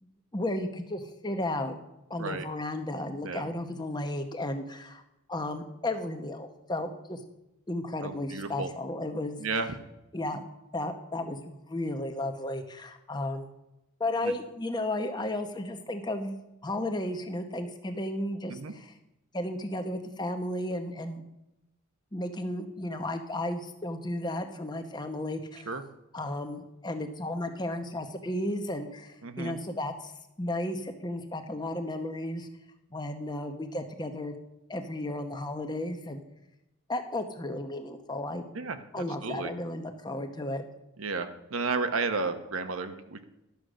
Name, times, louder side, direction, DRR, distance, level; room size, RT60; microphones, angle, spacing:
voice 1, 0.0-1.8 2.1-5.0 5.3-7.2 7.7-9.4 10.1-10.4 10.7-13.5 14.0-16.4 16.6-18.9 19.3-21.2 22.1-25.7 26.1-30.1 30.4-32.5 32.9-34.3 34.7-36.2 36.9-38.5 38.9-40.6, left 1 dB, 20° left, 6 dB, 0.9 m, -34 dB
voice 2, 8.0-8.7 9.4-9.7 14.2-14.3 18.5-18.7 25.7-25.8 29.2-29.5 38.5-39.5 41.0-43.2, right 4 dB, 75° right, 8 dB, 0.9 m, -33 dB
11.5 x 6.4 x 6.3 m, 0.91 s
head